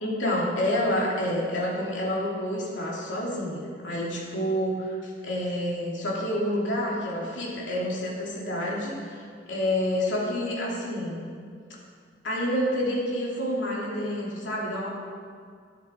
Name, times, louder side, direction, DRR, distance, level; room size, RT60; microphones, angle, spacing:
voice 1, 0.0-11.3 12.2-14.9, left 1 dB, 85° left, -4 dB, 3.0 m, -28 dB
11.5 x 10.5 x 4.6 m, 2.1 s
head